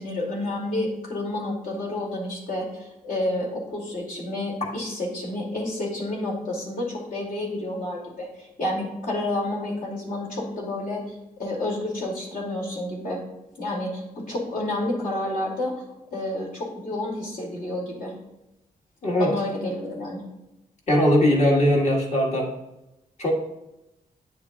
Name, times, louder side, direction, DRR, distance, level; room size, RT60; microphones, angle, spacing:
voice 1, 0.0-11.0 11.4-13.2 13.6-15.7 16.1-18.1 19.2-20.2, left 1 dB, 70° left, -2 dB, 2.6 m, -30 dB
voice 2, 19.0-19.3 20.9-22.5 23.2-23.3, left 1 dB, 50° left, -1 dB, 1.7 m, -20 dB
9.6 x 6.7 x 2.4 m, 0.91 s
wide cardioid pair, 145°, 15 cm